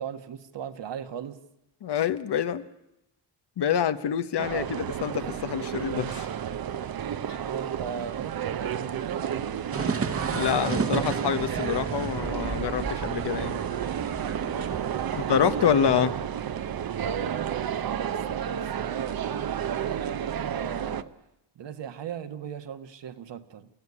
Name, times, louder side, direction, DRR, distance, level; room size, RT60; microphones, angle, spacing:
voice 1, 0.0-1.4 4.5-4.8 7.4-9.7 14.8-16.3 16.9-21.1 21.5-23.7, right 8 dB, 70° right, 1.6 m, -38 dB
voice 2, 1.8-2.7 3.6-4.6 5.0-6.3 10.3-13.6 15.1-16.1, left 9 dB, 60° left, 1.2 m, -26 dB
sound 1, 4.4-21.0, right 9 dB, 50° right, 0.9 m, -31 dB
sound 2, 9.7-16.1, right 4 dB, 30° right, 1.3 m, -33 dB
28.0 x 15.5 x 9.9 m
wide cardioid pair, 135°, 45 cm